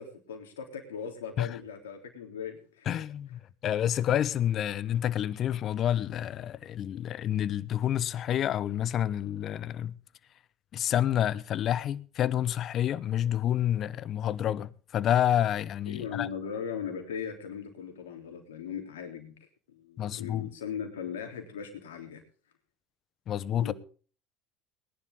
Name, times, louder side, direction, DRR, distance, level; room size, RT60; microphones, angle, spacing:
voice 1, 0.0-3.0 15.9-19.3 19.7-22.2 23.6-23.7, left 7 dB, 85° left, 3.4 m, -38 dB
voice 2, 2.9-10.0 10.7-16.3 20.0-20.5 23.3-23.7, left 11 dB, 50° left, 0.9 m, -29 dB
20.5 x 11.0 x 3.7 m
hypercardioid pair, 75°, 0 cm